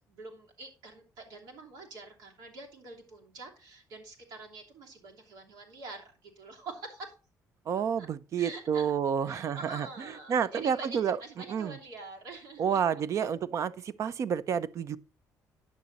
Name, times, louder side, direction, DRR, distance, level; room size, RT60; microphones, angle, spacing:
voice 1, 0.1-7.1 8.0-8.1 8.4-8.9 9.2-13.3, right 3 dB, 85° right, 3.0 m, -46 dB
voice 2, 7.7-9.9 10.3-11.2 11.5-11.8 12.6-15.0, right 7 dB, 50° right, 0.6 m, -29 dB
10.5 x 7.3 x 4.0 m
cardioid pair, 120°, 6 cm